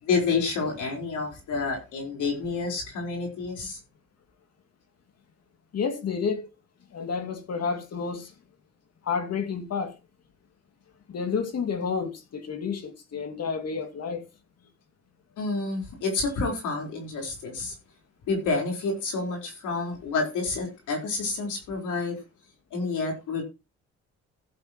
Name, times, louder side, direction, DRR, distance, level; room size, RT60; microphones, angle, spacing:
voice 1, 0.0-3.8 15.4-17.7 18.3-22.2 22.7-23.4, left 4 dB, 80° left, 4.6 m, -29 dB
voice 2, 5.7-6.5 6.9-8.3 9.1-9.9 11.1-14.2, left 5 dB, 55° left, 2.5 m, -30 dB
15.5 x 7.7 x 3.1 m
cardioid pair, 90°, 30 cm